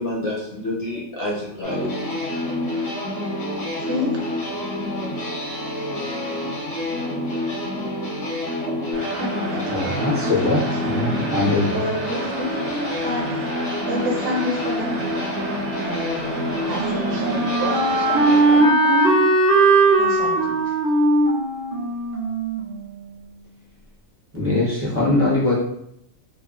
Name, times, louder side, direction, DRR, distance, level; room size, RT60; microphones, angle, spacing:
voice 1, 0.0-2.1, left 1 dB, 60° left, -4 dB, 0.7 m, -28 dB
sound 1, 1.6-18.4, left 1 dB, 80° left, 1.3 m, -28 dB
voice 2, 3.5-4.2 9.2-11.2 11.7-13.4 13.9-15.4 15.8-16.1 16.7-19.3 20.0-20.7, equal, 70° right, -1 dB, 0.9 m, -30 dB
sound 2, 8.9-18.6, right 2 dB, 85° right, 0.3 m, -33 dB
voice 3, 9.7-11.8 24.3-25.5, left 2 dB, 15° right, -8 dB, 0.4 m, -21 dB
Wind instrument woodwind instrument, 16.4-23.2, right 2 dB, 45° right, 1.0 m, -19 dB
3.0 x 2.0 x 2.3 m, 0.76 s
omnidirectional pair, 1.4 m